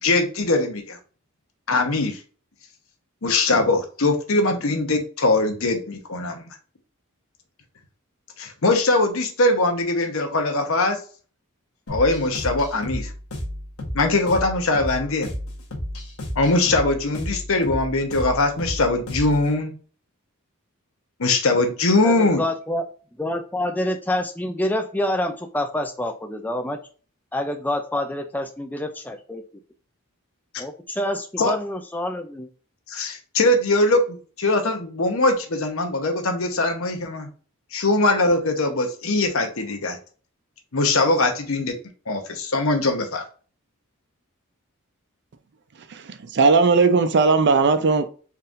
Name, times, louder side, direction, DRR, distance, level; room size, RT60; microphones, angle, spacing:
voice 1, 0.0-1.0 1.7-2.2 3.2-6.6 8.4-11.0 11.9-13.1 13.9-15.3 16.4-19.7 21.2-22.4 31.4-31.5 32.9-37.3 37.7-40.0 40.7-41.7 42.1-43.3, left 2 dB, 65° left, 0.9 m, -21 dB
sound 1, 11.9-19.5, equal, 85° left, 1.3 m, -32 dB
voice 2, 22.0-22.9 23.2-26.8 27.3-29.4 30.6-32.5, left 1 dB, 10° left, 0.4 m, -27 dB
voice 3, 45.9-48.1, right 4 dB, 55° right, 0.5 m, -18 dB
4.4 x 3.6 x 2.5 m
head